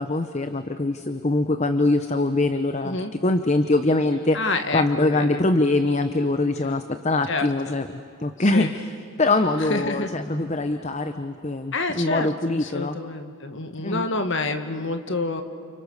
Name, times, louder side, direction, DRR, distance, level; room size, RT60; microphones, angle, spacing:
voice 1, 0.0-3.0 3.2-13.0 13.8-14.1, left 2 dB, 30° left, 8 dB, 0.8 m, -23 dB
voice 2, 4.3-5.5 7.3-7.8 8.5-8.7 9.7-10.1 11.7-15.4, left 3 dB, 55° left, 7 dB, 1.8 m, -28 dB
29.5 x 29.0 x 6.6 m, 2.4 s
head